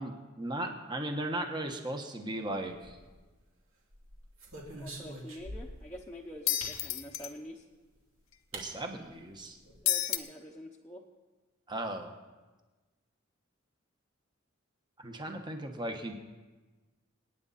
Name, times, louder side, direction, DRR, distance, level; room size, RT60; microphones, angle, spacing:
voice 1, 0.0-3.0 8.5-9.6 11.7-12.2 15.0-16.1, right 1 dB, 20° right, 4 dB, 1.3 m, -37 dB
sound 1, 2.7-3.4 3.9-5.9 6.6-6.8 7.9-8.0 8.5-8.7 9.0-9.1 9.4-9.8, right 1 dB, 75° right, 2.7 m, -45 dB
voice 2, 4.8-7.6 9.8-11.0, equal, 5° left, -4 dB, 0.9 m, -46 dB
sound 2, 6.5-7.3 9.9-10.2, left 13 dB, 80° left, 0.8 m, -30 dB
27.5 x 9.4 x 4.2 m, 1.2 s
head